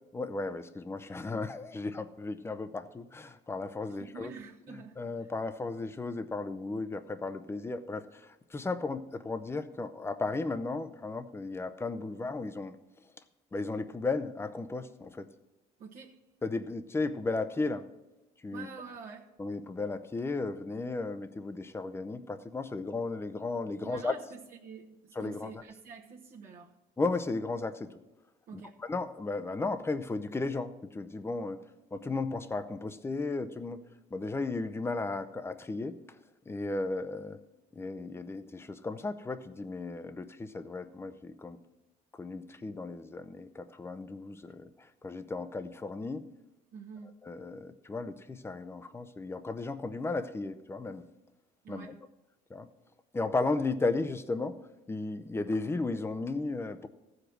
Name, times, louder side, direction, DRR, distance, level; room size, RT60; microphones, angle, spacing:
voice 1, 0.1-4.3 5.0-12.8 13.5-15.3 16.4-17.9 18.4-18.7 19.4-24.1 25.2-25.6 27.0-27.9 28.5-31.6 31.9-33.8 34.1-36.2 36.5-37.4 37.7-41.6 42.2-46.3 47.2-51.1 51.7-52.0 52.5-52.7 53.1-54.6 54.9-56.9, left 3 dB, 15° left, 0.6 m, -35 dB
voice 2, 3.8-5.0 15.8-16.2 18.5-19.3 23.8-26.8 28.5-28.8 46.7-47.2 51.6-52.0, right 5 dB, 60° right, 1.1 m, -47 dB
14.5 x 5.1 x 6.1 m
cardioid pair, 110°, 17 cm